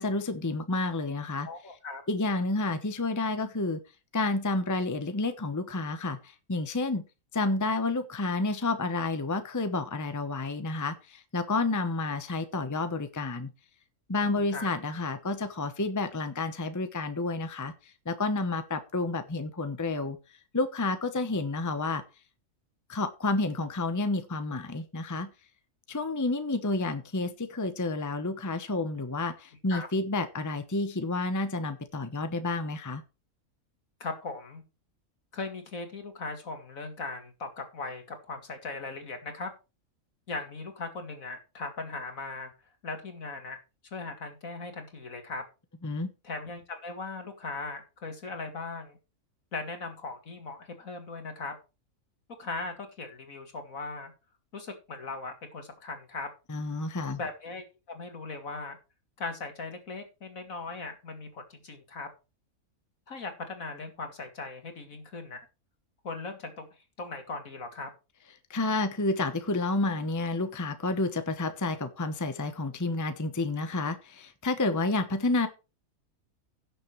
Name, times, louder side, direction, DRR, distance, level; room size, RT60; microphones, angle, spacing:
voice 1, 0.0-1.5 2.1-3.8 4.1-7.0 7.3-13.5 14.1-17.7 18.1-20.2 20.5-22.0 22.9-25.3 25.9-33.0 45.8-46.1 56.5-57.2 68.5-75.5, left 3 dB, 15° left, 9 dB, 0.9 m, -30 dB
voice 2, 1.5-2.0 14.2-14.7 29.7-29.9 34.0-34.6 35.3-39.5 40.3-42.5 42.8-43.6 43.9-45.4 46.2-49.0 49.5-51.5 52.4-54.1 54.5-56.3 57.2-58.8 59.2-62.1 63.1-65.4 66.0-66.7 67.0-67.9, left 3 dB, 70° left, 6 dB, 2.6 m, -38 dB
16.5 x 6.8 x 3.2 m, 0.29 s
omnidirectional pair, 1.5 m